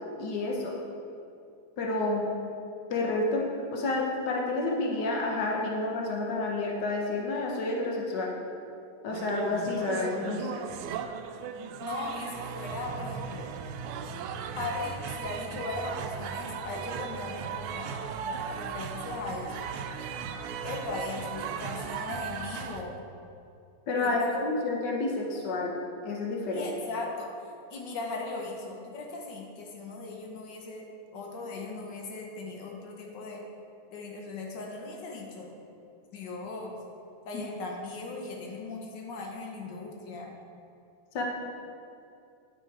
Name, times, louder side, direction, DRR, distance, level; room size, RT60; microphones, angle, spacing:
voice 1, 0.2-0.8 1.8-2.3 2.9-3.5 3.7-8.3 9.0-10.6 23.9-25.7 26.0-26.7 37.3-37.4 41.1-41.2, left 2 dB, 85° left, -1 dB, 0.9 m, -29 dB
sound 1, 9.1-22.8, right 7 dB, 85° right, 2.0 m, -37 dB
voice 2, 11.8-13.5 14.5-19.6 20.6-23.0 24.0-24.3 26.5-27.3 27.7-30.9 31.1-33.4 33.9-35.6 36.1-36.8 37.2-40.3, left 3 dB, 65° left, 0 dB, 1.1 m, -38 dB
10.0 x 6.2 x 4.7 m, 2.6 s
omnidirectional pair, 3.3 m